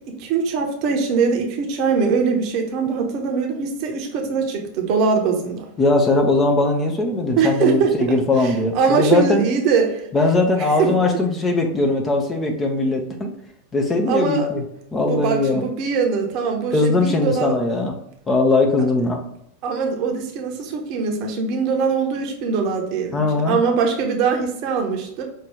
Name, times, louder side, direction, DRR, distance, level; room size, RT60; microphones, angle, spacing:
voice 1, 0.1-5.7 7.4-7.9 8.4-10.0 10.8-10.9 14.1-14.5 15.1-17.6 19.6-25.2, right 5 dB, 40° right, 2 dB, 0.9 m, -22 dB
voice 2, 5.8-9.4 10.1-13.3 13.7-14.6 14.9-15.6 16.7-17.9 18.3-19.2 23.1-23.6, left 2 dB, 15° left, 2 dB, 0.7 m, -20 dB
5.5 x 2.6 x 3.4 m, 0.76 s
figure-of-eight pair, 90°, 0 cm